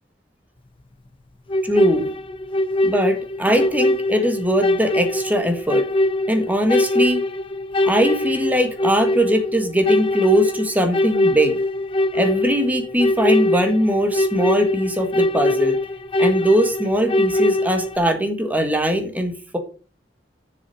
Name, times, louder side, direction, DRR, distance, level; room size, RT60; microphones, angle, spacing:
sound 1, 1.5-18.0, left 1 dB, 30° left, 0.7 m, -22 dB
voice 1, 1.6-2.1 2.8-5.8 6.3-7.2 7.9-11.6 12.1-15.8 16.2-19.6, equal, 10° right, 5 dB, 1.6 m, -20 dB
7.3 x 7.1 x 6.6 m, 0.38 s
head